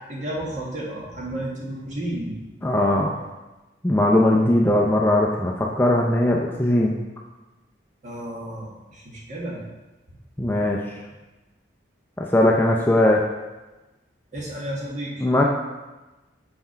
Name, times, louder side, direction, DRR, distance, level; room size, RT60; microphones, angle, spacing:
voice 1, 0.1-2.4 8.0-9.6 14.3-15.1, right 1 dB, 40° right, -4 dB, 1.5 m, -32 dB
voice 2, 2.6-3.2 3.8-6.9 10.4-10.8 12.2-13.3 15.2-15.4, left 1 dB, 10° left, -2 dB, 0.4 m, -19 dB
5.8 x 4.4 x 5.6 m, 1.1 s
head